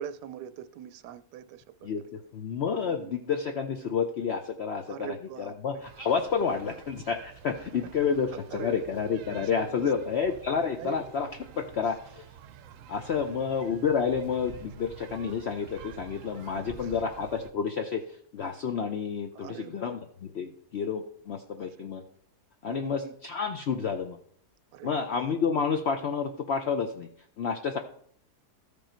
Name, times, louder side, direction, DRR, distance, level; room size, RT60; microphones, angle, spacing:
voice 1, 0.0-1.9 2.8-3.1 4.9-5.8 6.4-6.7 7.5-7.6 8.5-10.1 10.8-11.0 13.1-13.4 16.5-17.0 19.3-20.0 21.6-21.9 22.7-23.1 24.7-25.3, right 10 dB, 85° right, 1.2 m, -43 dB
voice 2, 1.8-11.3 11.6-12.3 12.9-22.0 22.6-24.2 24.8-27.1 27.4-27.8, left 6 dB, 65° left, 0.6 m, -30 dB
sound 1, 5.8-17.5, right 9 dB, 65° right, 0.9 m, -48 dB
13.5 x 5.3 x 4.4 m
omnidirectional pair, 1.7 m